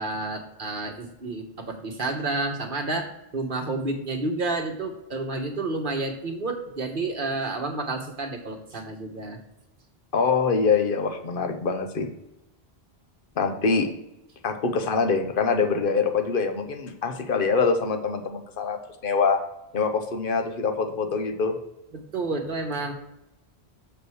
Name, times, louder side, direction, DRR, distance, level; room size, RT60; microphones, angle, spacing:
voice 1, 0.0-9.4 21.9-22.9, right 2 dB, 55° right, 2 dB, 1.6 m, -30 dB
voice 2, 10.1-12.1 13.4-13.9 14.4-19.4 19.7-21.6, left 5 dB, 60° left, 6 dB, 1.2 m, -24 dB
6.8 x 5.4 x 6.3 m, 0.90 s
omnidirectional pair, 1.1 m